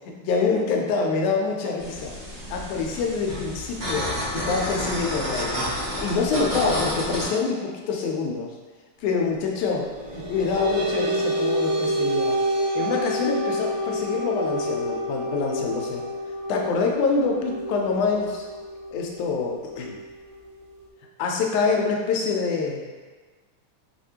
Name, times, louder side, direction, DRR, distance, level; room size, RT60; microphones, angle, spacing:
voice 1, 0.1-2.1 2.5-5.7 6.0-8.5 9.0-12.4 12.8-16.0 16.5-18.5 18.9-20.0 21.2-22.8, left 4 dB, 85° left, 1 dB, 2.0 m, -26 dB
sound 1, 1.8-7.3, equal, 40° right, 0.7 m, -30 dB
sound 2, 9.9-20.9, equal, 75° right, 1.9 m, -28 dB
5.4 x 2.5 x 2.8 m, 1.4 s
omnidirectional pair, 3.4 m